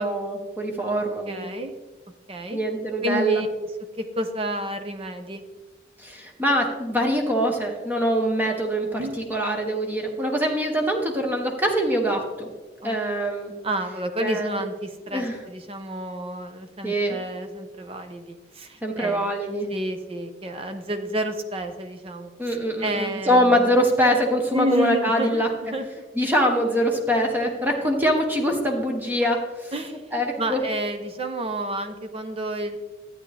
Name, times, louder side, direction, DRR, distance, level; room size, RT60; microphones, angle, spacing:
voice 1, 0.0-1.5 2.5-3.4 6.0-12.5 12.8-13.5 14.2-14.6 15.1-15.4 16.8-17.2 18.8-19.7 22.4-25.5 26.2-29.7 30.1-30.6, equal, 10° right, 1 dB, 1.0 m, -23 dB
voice 2, 0.8-1.7 2.3-2.6 3.0-3.7 4.0-5.4 9.0-9.1 12.8-13.0 13.6-19.3 19.7-23.7 24.5-25.9 29.7-32.8, right 1 dB, 35° right, 7 dB, 0.7 m, -30 dB
12.0 x 8.8 x 3.4 m, 1.3 s
head